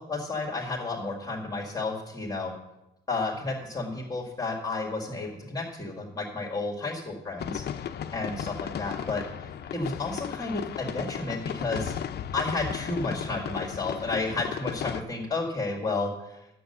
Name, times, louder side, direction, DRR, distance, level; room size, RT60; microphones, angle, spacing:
voice 1, 0.0-2.5 3.1-7.6 8.1-9.2 9.7-11.9 12.3-16.1, left 3 dB, 20° left, -1 dB, 2.1 m, -31 dB
sound 1, 7.4-15.0, left 9 dB, 55° left, 0.6 m, -35 dB
9.9 x 7.8 x 6.7 m, 0.92 s
cardioid pair, 90°, 20 cm